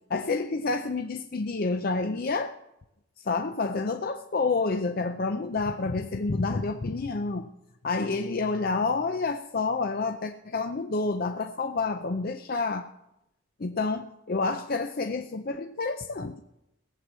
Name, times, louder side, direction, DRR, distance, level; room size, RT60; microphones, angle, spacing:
voice 1, 0.1-2.5 3.2-7.5 7.8-12.9 13.6-16.4, left 3 dB, 45° left, 6 dB, 0.5 m, -29 dB
17.5 x 7.8 x 7.4 m, 0.86 s
head